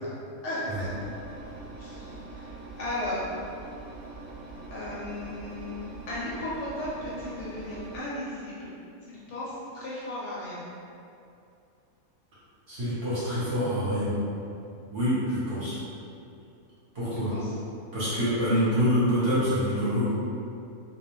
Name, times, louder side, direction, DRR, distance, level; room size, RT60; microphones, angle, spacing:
voice 1, 0.4-0.9 1.8-2.4 2.8-3.2 4.7-8.7 9.1-10.6 17.1-17.5, left 1 dB, 65° left, -8 dB, 0.8 m, -35 dB
Engine, 0.7-8.0, right 3 dB, 80° right, 1.0 m, -43 dB
voice 2, 12.7-14.1 14.9-15.8 16.9-17.3 17.9-20.1, equal, 50° right, -11 dB, 0.9 m, -26 dB
2.3 x 2.1 x 3.0 m, 2.6 s
omnidirectional pair, 1.5 m